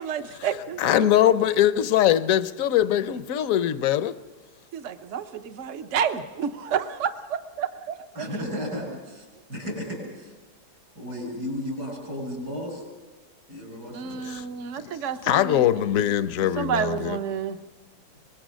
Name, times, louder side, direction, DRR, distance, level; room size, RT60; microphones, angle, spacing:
voice 1, 0.0-1.3 4.7-8.0 13.9-15.8 16.6-17.6, right 7 dB, 55° right, 1.2 m, -30 dB
voice 2, 0.8-4.2 14.3-14.4 14.8-14.9 15.2-17.2, left 11 dB, 60° left, 1.1 m, -22 dB
voice 3, 8.1-10.3 11.0-12.8 13.5-14.2, equal, 75° right, 7.1 m, -34 dB
24.0 x 20.5 x 6.3 m
omnidirectional pair, 1.7 m